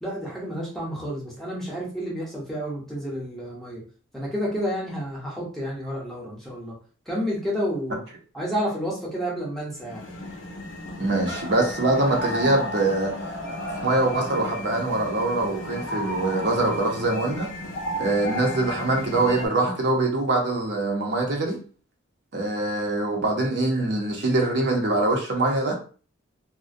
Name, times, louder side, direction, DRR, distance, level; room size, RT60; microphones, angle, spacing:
voice 1, 0.0-3.8 4.1-6.8 7.1-8.0 8.3-10.0, equal, ahead, 0.7 m, -30 dB
sound 1, 9.7-19.5, equal, 80° left, 0.6 m, -33 dB
voice 2, 11.0-13.2 13.8-17.5 18.0-21.6 22.3-25.7, right 2 dB, 60° right, 0.6 m, -23 dB
2.4 x 2.1 x 2.5 m
head